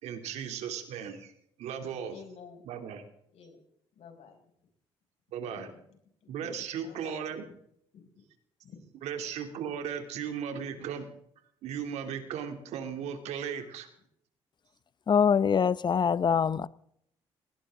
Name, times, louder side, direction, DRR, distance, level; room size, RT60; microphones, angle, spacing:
voice 1, 0.0-1.3 1.6-2.2 2.6-3.0 5.3-5.7 6.3-7.4 9.0-11.1 11.6-13.9, right 8 dB, 80° right, 2.9 m, -36 dB
voice 2, 2.1-2.7 3.3-3.6 3.9-4.4 5.5-7.3 7.9-8.1 8.6-8.8 10.8-10.9, left 6 dB, 70° left, 6.0 m, -51 dB
voice 3, 15.1-16.7, left 7 dB, 40° left, 0.8 m, -24 dB
20.0 x 18.5 x 3.8 m
supercardioid pair, 75°, 11 cm